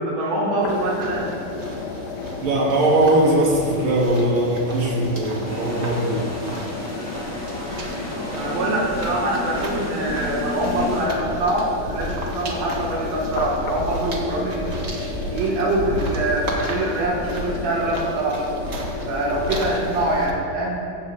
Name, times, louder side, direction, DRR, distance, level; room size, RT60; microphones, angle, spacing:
voice 1, 0.0-1.3 8.3-14.7 15.3-18.5 19.1-20.9, right 1 dB, 80° right, -3 dB, 3.8 m, -24 dB
sound 1, 0.6-20.2, left 3 dB, 65° left, 2.7 m, -33 dB
sound 2, 0.7-20.3, equal, 50° right, 0.7 m, -34 dB
voice 2, 2.4-6.3, right 1 dB, 35° right, -5 dB, 3.5 m, -20 dB
sound 3, 5.4-11.1, left 1 dB, 20° left, 0.4 m, -33 dB
17.0 x 15.0 x 3.8 m, 2.5 s
omnidirectional pair, 4.2 m